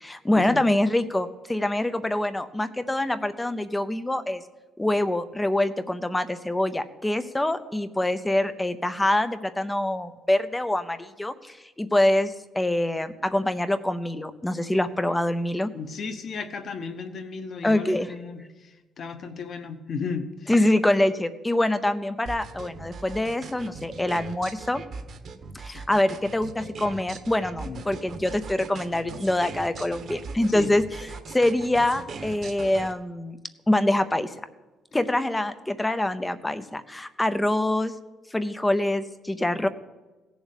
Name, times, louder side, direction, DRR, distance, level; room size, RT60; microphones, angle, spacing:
voice 1, 0.0-4.4 4.8-15.7 17.6-18.1 20.5-24.8 25.5-30.8 31.3-33.4 33.7-34.3 34.9-37.9 38.3-39.7, left 1 dB, 10° left, 12 dB, 0.6 m, -25 dB
voice 2, 15.7-20.5 25.7-25.8 27.6-27.8 30.5-30.7, left 5 dB, 40° left, 8 dB, 1.2 m, -35 dB
sound 1, 22.3-32.9, right 4 dB, 45° right, 1.2 m, -40 dB
17.0 x 7.2 x 8.3 m, 1.1 s
cardioid pair, 170°, 0 cm